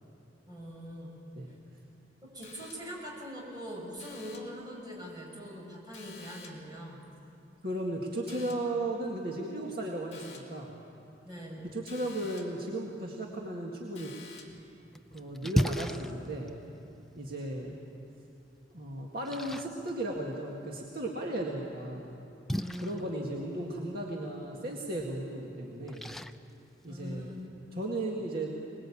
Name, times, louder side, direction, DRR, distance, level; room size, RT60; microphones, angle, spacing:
voice 1, 0.5-1.2 2.2-7.0 11.2-11.7 22.5-23.1 26.9-27.5, equal, 25° right, -3 dB, 6.4 m, -43 dB
sound 1, 2.4-3.1 4.0-4.6 5.9-6.8 8.3-8.8 10.1-10.6 11.9-12.7 14.0-14.7, left 5 dB, 35° left, 2.6 m, -51 dB
voice 2, 7.6-10.7 11.6-14.1 15.1-16.5 17.2-17.8 18.7-22.1 22.8-26.1 26.8-27.3 27.7-28.5, right 1 dB, 55° right, -2 dB, 2.1 m, -35 dB
Splash splatter, 14.5-27.5, equal, ahead, 0.5 m, -39 dB
25.0 x 20.5 x 8.7 m, 2.7 s
head